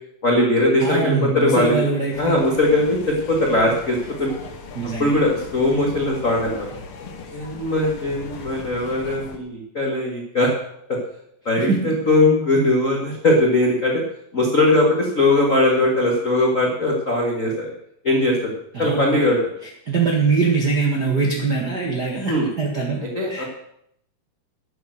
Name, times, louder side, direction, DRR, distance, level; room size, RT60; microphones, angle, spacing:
voice 1, 0.2-1.8 2.2-4.3 5.0-6.7 7.3-10.5 10.9-11.0 11.4-14.0 14.3-17.7 18.0-18.5 18.8-19.4 22.2-22.5 23.1-23.4, left 1 dB, 50° left, -1 dB, 0.9 m, -20 dB
voice 2, 0.8-2.4 4.7-5.2 11.6-11.9 18.7-19.2 19.8-23.4, right 4 dB, 50° right, -1 dB, 1.2 m, -22 dB
sound 1, 2.1-9.4, left 4 dB, 65° left, 1.4 m, -38 dB
12.0 x 9.1 x 6.5 m, 0.74 s
omnidirectional pair, 4.3 m